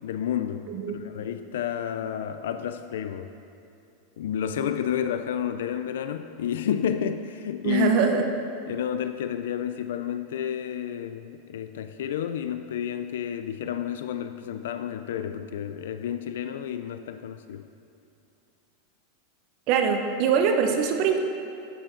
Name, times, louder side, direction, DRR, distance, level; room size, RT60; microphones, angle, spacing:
voice 1, 0.0-3.3 4.2-8.0 8.7-17.6, left 9 dB, 85° left, 9 dB, 0.4 m, -30 dB
voice 2, 7.6-8.2 19.7-21.2, right 6 dB, 45° right, 4 dB, 0.8 m, -23 dB
11.5 x 6.2 x 4.5 m, 2.6 s
supercardioid pair, 155°, 0 cm